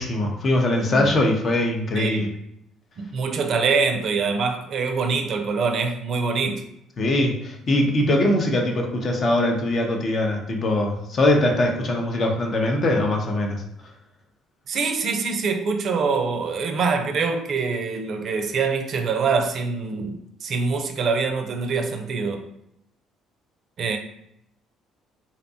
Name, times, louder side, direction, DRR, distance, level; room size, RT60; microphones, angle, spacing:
voice 1, 0.0-2.3 7.0-13.6, left 1 dB, 50° left, 0.6 m, -22 dB
voice 2, 1.9-2.3 3.0-6.6 14.7-22.4 23.8-24.0, right 4 dB, 55° right, 0.4 m, -24 dB
2.7 x 2.1 x 2.7 m
hypercardioid pair, 60°, 0 cm